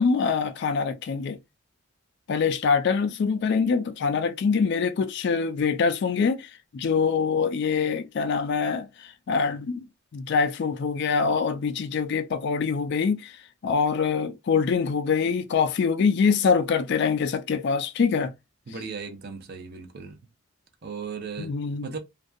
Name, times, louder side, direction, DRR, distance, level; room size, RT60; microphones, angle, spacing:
voice 1, 0.0-1.4 2.3-9.9 10.1-18.3 21.4-21.9, left 5 dB, 55° left, 0.3 m, -24 dB
voice 2, 18.7-20.2 20.8-21.6 21.8-22.0, right 5 dB, 50° right, 0.6 m, -36 dB
2.6 x 2.2 x 2.4 m
head